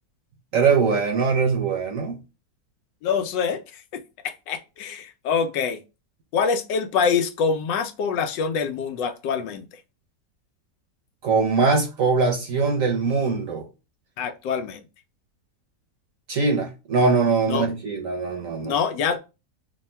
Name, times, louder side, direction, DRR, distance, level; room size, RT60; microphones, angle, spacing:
voice 1, 0.5-2.2 11.2-13.6 16.3-18.7, right 4 dB, 60° right, 1.0 m, -22 dB
voice 2, 3.0-3.6 3.9-5.8 6.3-9.7 14.2-14.8 17.5-17.7 18.6-19.2, left 6 dB, 85° left, 1.3 m, -25 dB
3.5 x 2.3 x 4.2 m
omnidirectional pair, 1.9 m